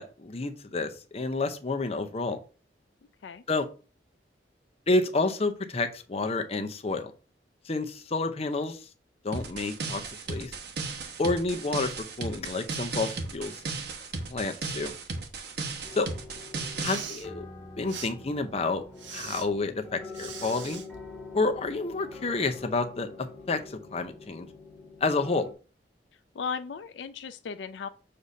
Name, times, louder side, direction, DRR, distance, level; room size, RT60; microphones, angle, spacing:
voice 1, 0.0-2.4 3.5-3.7 4.9-7.1 7.7-8.9 9.2-10.0 10.3-10.5 11.2-11.9 12.2-13.6 14.3-14.9 15.9-16.1 16.8-17.5 17.8-18.8 19.1-20.8 21.3-23.1 23.5-24.5 25.0-25.5, left 3 dB, 35° left, 0.7 m, -29 dB
sound 1, 9.3-17.0, right 3 dB, 65° right, 1.0 m, -35 dB
sound 2, 15.8-25.5, left 3 dB, 5° left, 1.6 m, -45 dB
Respiratory sounds, 16.6-17.3 17.9-18.1 19.0-19.4 20.1-20.9, right 6 dB, 85° right, 1.0 m, -40 dB
voice 2, 26.3-27.9, left 6 dB, 75° left, 0.4 m, -36 dB
6.6 x 2.7 x 5.4 m
head